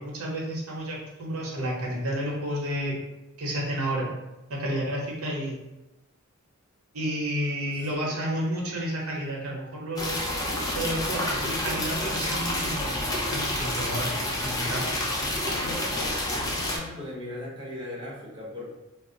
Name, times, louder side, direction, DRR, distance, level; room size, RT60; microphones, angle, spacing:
voice 1, 0.0-2.9 3.4-4.1 4.5-5.6 6.9-10.2 10.7-14.1 14.4-14.8, equal, 80° right, -3 dB, 0.8 m, -31 dB
voice 2, 7.8-8.3 15.1-18.7, left 1 dB, 20° right, -5 dB, 0.8 m, -39 dB
sound 1, 10.0-16.8, left 1 dB, 15° left, 0.5 m, -29 dB
2.3 x 2.0 x 3.7 m, 1.0 s
head